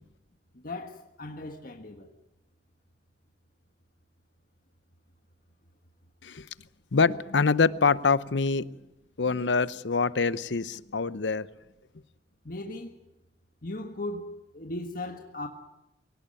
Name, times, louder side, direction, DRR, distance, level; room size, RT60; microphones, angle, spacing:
voice 1, 0.5-2.1 12.4-13.0 13.6-15.5, left 2 dB, 50° left, 1.6 m, -37 dB
voice 2, 6.9-8.8 9.2-11.5, left 4 dB, 85° left, 0.8 m, -25 dB
23.5 x 18.5 x 9.1 m
head